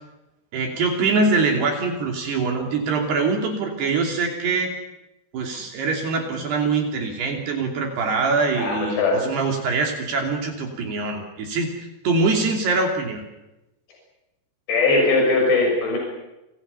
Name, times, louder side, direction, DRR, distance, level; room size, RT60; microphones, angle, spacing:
voice 1, 0.5-4.7 5.3-13.2, right 3 dB, 60° right, 2 dB, 4.7 m, -23 dB
voice 2, 8.5-9.3 14.7-16.0, left 3 dB, 60° left, -1 dB, 9.0 m, -20 dB
29.5 x 27.0 x 5.7 m, 0.96 s
omnidirectional pair, 5.6 m